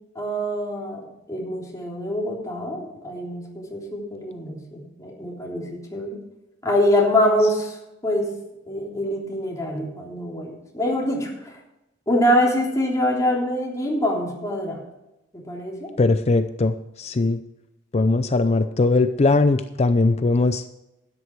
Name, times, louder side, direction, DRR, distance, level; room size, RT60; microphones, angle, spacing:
voice 1, 0.1-6.2 6.6-7.8 8.0-8.3 8.7-11.5 12.1-14.8 15.3-15.9, left 1 dB, 20° left, -3 dB, 3.4 m, -24 dB
voice 2, 16.0-17.4 17.9-20.6, left 3 dB, 35° left, 10 dB, 0.5 m, -20 dB
12.5 x 10.0 x 4.7 m, 0.92 s
head